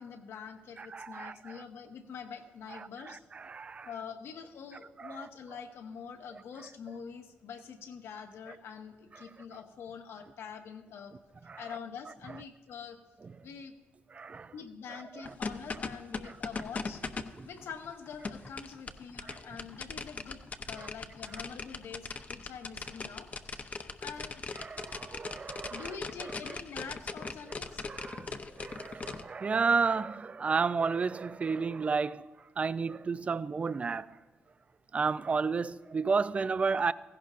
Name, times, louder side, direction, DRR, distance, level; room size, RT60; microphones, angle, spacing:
voice 1, 0.0-3.2 3.8-11.1 11.6-13.0 13.4-13.8 14.5-17.0 17.4-20.4 20.7-23.7 24.0-24.4 25.7-27.8, left 6 dB, 80° left, 1.1 m, -45 dB
voice 2, 0.8-1.6 3.1-3.9 5.0-5.3 11.5-11.6 14.1-14.5 17.4-17.5 19.2-19.4 20.8-20.9 24.6-25.9 27.8-28.3 28.6-32.3 32.6-34.2 34.9-36.9, right 5 dB, 30° right, 0.3 m, -32 dB
sound 1, 15.2-29.2, left 4 dB, 35° left, 0.7 m, -39 dB
16.5 x 15.5 x 2.5 m
cardioid pair, 110°, 4 cm